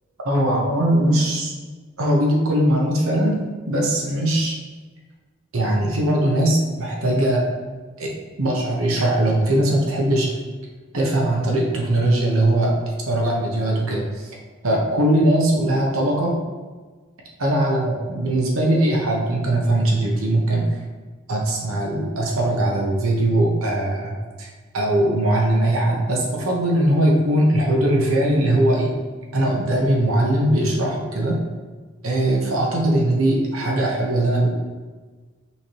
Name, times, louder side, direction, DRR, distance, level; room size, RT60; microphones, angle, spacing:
voice 1, 0.2-1.5 2.0-3.4 3.7-4.6 5.5-7.5 8.0-8.1 8.4-10.3 10.9-12.8 13.1-14.3 14.6-16.4 17.4-20.8 21.3-24.5 24.7-28.9 29.3-31.4 32.0-34.5, right 1 dB, 80° right, -2 dB, 0.9 m, -20 dB
5.6 x 3.2 x 2.9 m, 1.4 s
head